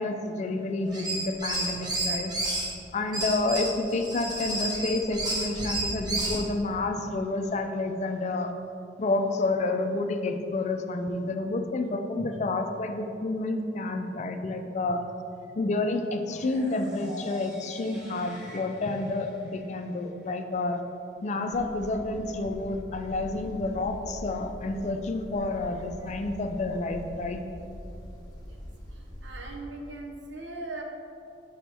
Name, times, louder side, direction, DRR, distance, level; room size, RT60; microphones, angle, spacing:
voice 1, 0.0-2.3 2.9-8.5 9.0-15.0 15.6-20.8 21.2-27.4, left 2 dB, 40° left, 6 dB, 0.4 m, -29 dB
sound 1, 0.9-2.7 3.1-6.4, right 1 dB, 25° right, 0.9 m, -31 dB
sound 2, 16.3-20.3, equal, 5° right, 1.3 m, -44 dB
sound 3, 21.5-29.6, equal, 20° left, 0.8 m, -43 dB
voice 2, 28.9-30.8, right 2 dB, 80° right, 0 dB, 0.8 m, -40 dB
5.8 x 5.1 x 3.4 m, 2.5 s
head